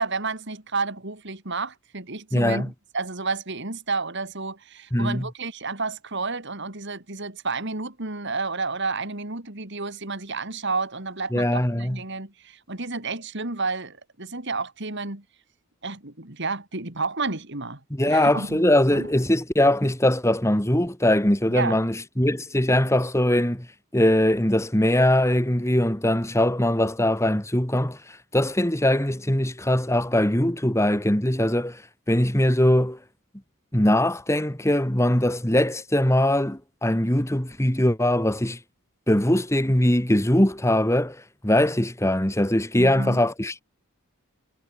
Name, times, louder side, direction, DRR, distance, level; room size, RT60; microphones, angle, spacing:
voice 1, 0.0-15.2 15.8-19.1 21.5-21.8 42.8-43.2, right 3 dB, 55° right, 3.3 m, -31 dB
voice 2, 2.3-2.7 4.9-5.3 11.3-12.0 17.9-23.7 23.9-31.8 32.1-33.0 33.7-38.6 39.1-43.6, left 1 dB, 15° left, 2.2 m, -21 dB
head